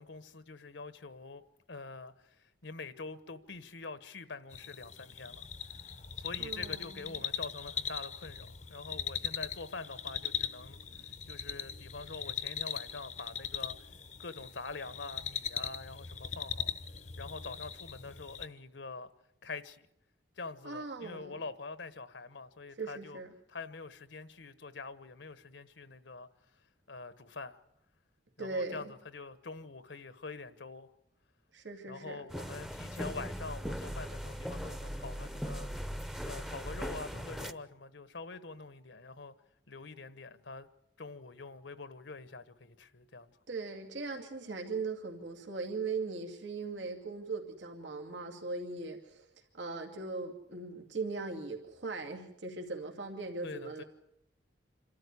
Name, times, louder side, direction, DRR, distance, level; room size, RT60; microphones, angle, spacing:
voice 1, 0.0-1.4 1.7-5.9 6.2-13.9 14.2-16.7 17.2-19.1 19.4-19.9 20.3-23.2 23.5-26.3 26.9-27.6 28.4-30.9 31.9-35.9 36.2-39.3 39.7-40.7 41.0-43.4 53.4-53.8, left 3 dB, 75° left, 1.2 m, -45 dB
sound 1, 4.5-18.5, left 8 dB, 40° left, 0.8 m, -40 dB
voice 2, 6.4-7.2 20.6-21.4 22.8-23.3 28.4-28.8 31.5-32.2 43.5-49.2 49.5-53.8, right 3 dB, 90° right, 2.4 m, -39 dB
sound 2, 32.3-37.5, equal, ahead, 0.8 m, -39 dB
26.5 x 13.0 x 9.7 m
head